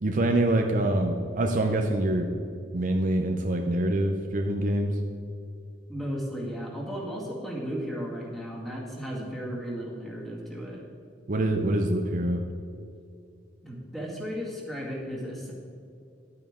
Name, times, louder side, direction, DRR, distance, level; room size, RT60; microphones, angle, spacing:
voice 1, 0.0-2.3 2.7-5.0 11.3-12.4, right 1 dB, 45° right, 3 dB, 0.7 m, -25 dB
voice 2, 5.9-10.8 13.6-15.5, equal, ahead, -4 dB, 2.1 m, -35 dB
11.0 x 8.6 x 3.7 m, 2.5 s
head